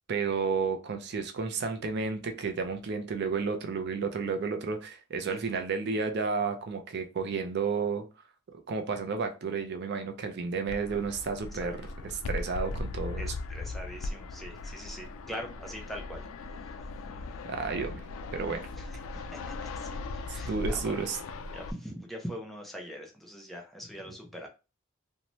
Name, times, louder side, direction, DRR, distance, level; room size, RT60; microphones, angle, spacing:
voice 1, 0.1-8.1 8.5-13.3 17.4-18.0 18.3-18.6 20.3-21.2, right 5 dB, 55° right, 6 dB, 0.4 m, -32 dB
Fixed-wing aircraft airplane, 10.7-21.7, left 3 dB, 85° left, 0.3 m, -38 dB
voice 2, 13.2-16.3 18.8-21.1 21.5-24.5, equal, ahead, 1 dB, 0.5 m, -42 dB
2.7 x 2.1 x 2.9 m, 0.30 s
head